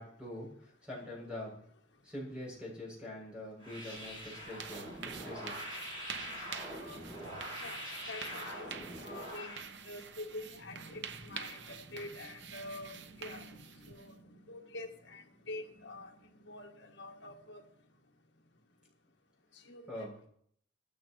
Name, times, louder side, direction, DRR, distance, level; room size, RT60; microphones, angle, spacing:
voice 1, 0.0-1.7 2.0-5.5 19.9-20.1, left 1 dB, 5° right, -4 dB, 7.3 m, -44 dB
sound 1, 3.6-9.7, equal, 30° right, 6.0 m, -44 dB
sound 2, 3.9-14.2, right 6 dB, 60° right, 0.8 m, -47 dB
voice 2, 7.6-8.7 9.0-16.1 16.4-17.6 19.5-20.3, left 2 dB, 65° left, 2 dB, 1.7 m, -47 dB
19.0 x 14.5 x 3.1 m, 0.65 s
head